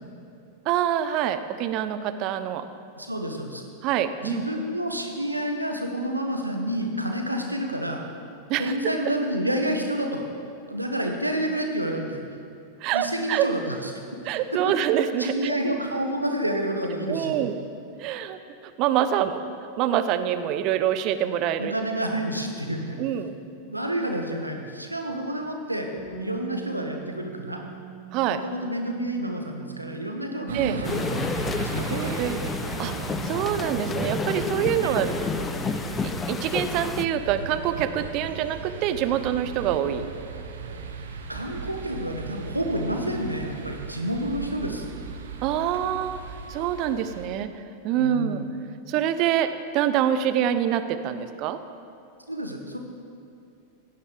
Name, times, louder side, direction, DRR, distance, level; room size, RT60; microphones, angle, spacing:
voice 1, 0.7-2.7 3.8-4.4 8.5-8.7 12.8-13.5 14.2-15.5 17.1-17.6 18.0-18.4 18.8-19.4 19.8-21.7 23.0-23.3 28.1-28.4 30.5-30.8 31.9-32.4 32.8-32.9 33.2-35.1 36.3-40.0 45.4-46.2 46.5-47.5 47.8-48.4 48.9-51.6, right 10 dB, 40° right, 11 dB, 0.7 m, -25 dB
voice 2, 2.9-3.7 4.2-8.0 8.6-10.2 10.7-12.2 12.9-13.9 15.2-17.4 21.6-23.0 23.7-25.9 26.2-27.6 28.3-31.3 31.6-32.1 34.8-35.1 41.1-44.9 47.9-48.3 52.3-52.8, right 1 dB, 85° right, 3 dB, 1.4 m, -29 dB
Bass guitar, 26.0-32.2, right 8 dB, 80° left, 2.9 m, -44 dB
sound 1, 30.5-47.3, right 6 dB, 65° right, 1.0 m, -36 dB
sound 2, 30.8-37.1, left 5 dB, 20° left, 0.3 m, -30 dB
15.5 x 10.0 x 5.1 m, 2.6 s
figure-of-eight pair, 90°, 0 cm